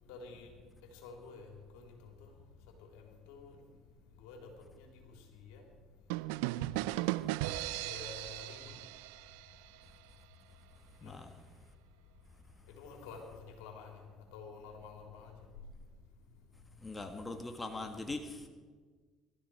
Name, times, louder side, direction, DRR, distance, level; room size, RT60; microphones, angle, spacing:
voice 1, 0.1-0.5 1.0-1.5 1.7-1.8 2.2-2.3 2.9-3.5 4.2-4.4 4.8-4.9 5.4-5.6 7.8-8.8 11.0-11.1 12.8-13.9 14.3-15.3, left 5 dB, 75° left, 2 dB, 3.5 m, -49 dB
sound 1, 6.1-9.8, right 17 dB, 80° right, 0.5 m, -37 dB
voice 2, 11.0-11.4 16.8-18.5, left 2 dB, 20° left, 5 dB, 1.8 m, -41 dB
22.5 x 13.5 x 4.8 m, 1.4 s
hypercardioid pair, 70°, 0 cm